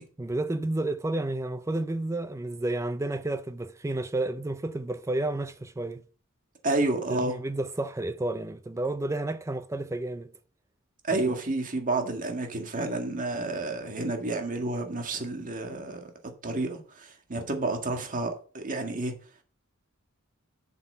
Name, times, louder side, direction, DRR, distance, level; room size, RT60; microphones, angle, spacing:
voice 1, 0.2-6.0 7.1-10.3 11.1-11.2, right 2 dB, 15° right, 0.4 m, -31 dB
voice 2, 6.6-7.4 11.0-16.1 16.4-19.1, right 2 dB, 40° right, 1.8 m, -30 dB
7.4 x 6.1 x 5.5 m
head